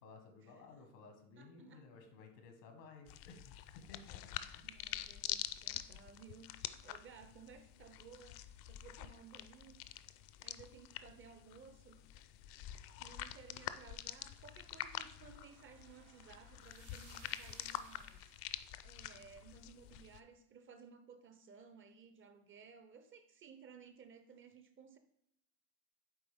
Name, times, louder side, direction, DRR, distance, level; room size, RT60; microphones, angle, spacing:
voice 1, 0.0-4.6, left 4 dB, 90° left, 4 dB, 1.6 m, -57 dB
voice 2, 1.4-1.9 4.1-4.2 4.6-9.8 10.4-12.0 13.0-18.3 18.8-25.0, right 6 dB, 25° right, 9 dB, 0.4 m, -58 dB
sound 1, 3.1-20.2, left 13 dB, 55° left, 0.5 m, -47 dB
sound 2, 14.1-18.7, right 9 dB, 80° right, 0.9 m, -64 dB
9.0 x 3.3 x 3.5 m, 0.78 s
supercardioid pair, 110°, 48 cm